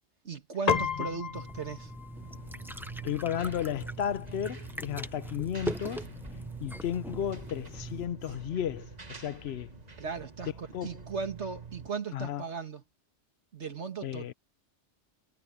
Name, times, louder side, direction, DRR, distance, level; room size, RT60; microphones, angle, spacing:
voice 1, 0.2-1.9 10.0-12.8 13.5-14.3, right 5 dB, 75° right, 2.2 m, -37 dB
Piano, 0.7-10.3, left 6 dB, 40° left, 0.9 m, -38 dB
sound 1, 1.3-8.1, equal, ahead, 0.7 m, -41 dB
sound 2, 2.1-11.9, right 5 dB, 35° right, 1.9 m, -47 dB
voice 2, 3.0-6.1 6.6-9.7 10.7-11.0 12.1-12.4 14.0-14.3, left 9 dB, 70° left, 0.9 m, -33 dB
omnidirectional pair, 1.2 m